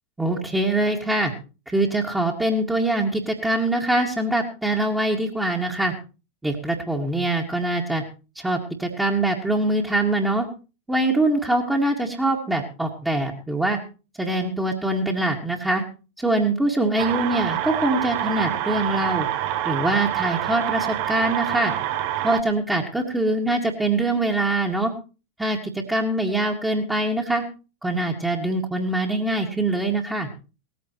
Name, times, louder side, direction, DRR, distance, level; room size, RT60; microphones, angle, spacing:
voice 1, 0.2-1.3 1.7-5.9 6.4-8.0 8.4-10.5 10.9-13.8 14.2-15.8 16.2-19.3 19.6-21.7 22.2-24.9 25.4-27.4 27.8-30.3, right 2 dB, 5° right, -2 dB, 2.1 m, -23 dB
sound 1, 17.0-22.4, right 12 dB, 45° right, 1.3 m, -26 dB
19.0 x 14.5 x 3.1 m, 0.33 s
figure-of-eight pair, 90°, 0 cm